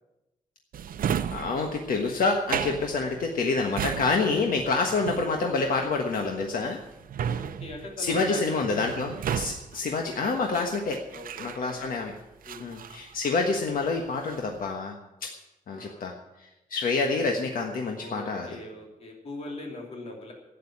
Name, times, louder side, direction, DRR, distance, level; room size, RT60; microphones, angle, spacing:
Drawer open or close, 0.7-12.0 12.4-13.7 14.1-14.6, right 8 dB, 85° right, 0.7 m, -35 dB
voice 1, 1.3-6.8 8.0-11.0 11.4-12.1 12.6-15.0 15.2-15.3 15.7-16.1 16.7-18.5, left 3 dB, 80° left, 2 dB, 1.4 m, -27 dB
voice 2, 7.2-8.8 11.1-11.8 12.4-12.7 15.7-16.0 17.9-20.3, left 2 dB, 45° left, 0 dB, 3.0 m, -41 dB
12.0 x 9.4 x 8.7 m, 0.97 s
wide cardioid pair, 175°, 14 cm